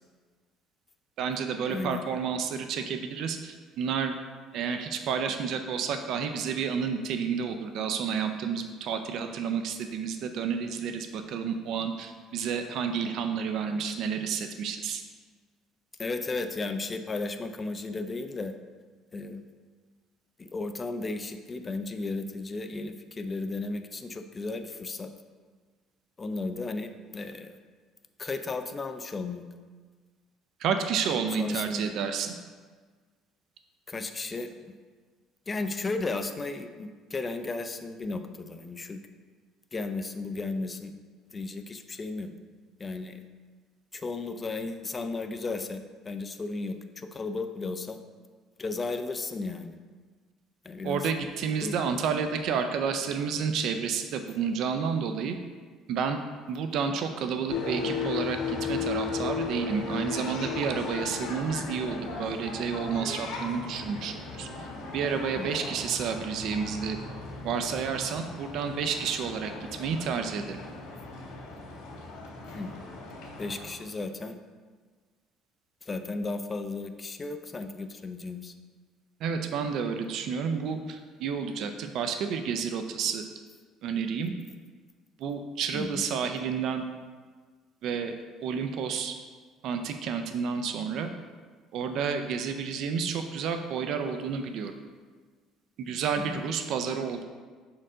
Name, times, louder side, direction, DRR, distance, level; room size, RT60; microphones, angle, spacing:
voice 1, 1.2-4.2 4.5-15.0 30.6-32.3 50.8-55.4 55.9-56.2 56.5-64.5 64.9-67.0 67.4-69.5 69.8-70.6 79.2-83.2 83.8-84.3 85.2-86.9 87.8-88.1 88.4-89.2 89.6-91.1 91.7-94.7 95.8-97.2, right 6 dB, 60° right, 7 dB, 0.4 m, -30 dB
voice 2, 1.7-2.1 16.0-18.5 19.1-19.4 20.4-25.1 26.2-27.6 28.2-29.5 31.4-31.9 33.9-34.7 35.5-39.0 39.7-40.9 41.3-42.3 42.8-43.2 43.9-48.0 48.6-49.8 50.6-51.1 51.6-51.8 65.4-65.5 72.5-72.8 73.4-74.4 75.8-78.5 85.7-86.0 96.2-96.4, left 3 dB, 20° left, 8 dB, 0.4 m, -34 dB
sound 1, 57.5-73.7, left 4 dB, 75° left, 1.7 m, -36 dB
6.2 x 4.4 x 3.7 m, 1.5 s
cardioid pair, 135°, 0 cm